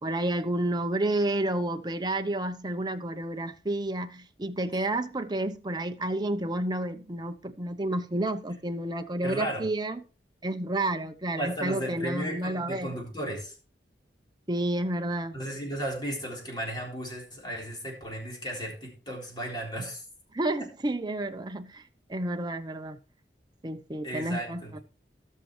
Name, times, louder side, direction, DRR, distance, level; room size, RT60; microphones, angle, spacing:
voice 1, 0.0-10.0 10.4-12.9 14.5-15.3 20.3-21.8 22.1-23.0 23.6-24.8, right 1 dB, 25° right, 0.8 m, -30 dB
voice 2, 9.2-9.6 11.4-13.5 15.3-20.0 24.0-24.8, right 1 dB, 25° left, 3.8 m, -35 dB
17.5 x 6.5 x 3.1 m
head